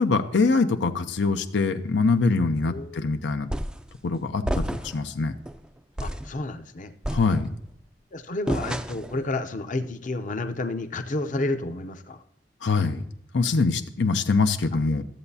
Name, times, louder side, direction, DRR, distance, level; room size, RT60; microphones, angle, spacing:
voice 1, 0.0-3.5 4.0-5.3 7.1-7.5 12.6-13.0 13.3-15.0, left 4 dB, 85° left, 7 dB, 0.6 m, -23 dB
voice 2, 2.7-3.1 6.0-6.9 8.1-12.2, left 2 dB, 45° left, 8 dB, 0.7 m, -31 dB
sound 1, 3.5-3.9 4.4-5.1 5.4-5.6 6.0-6.3 7.0-7.7 8.5-9.2, equal, 5° right, 0.3 m, -30 dB
13.5 x 7.9 x 2.7 m, 0.74 s
head